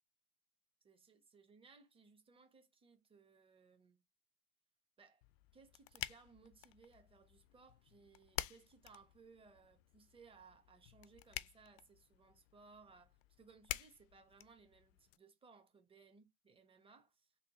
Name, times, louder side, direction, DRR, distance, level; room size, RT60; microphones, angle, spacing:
voice 1, 0.8-4.0 5.0-5.2 5.5-17.3, right 4 dB, 15° right, 1.0 m, -64 dB
sound 1, 5.2-15.2, left 17 dB, 65° left, 0.4 m, -50 dB
3.7 x 2.3 x 4.5 m
hypercardioid pair, 100°, 34 cm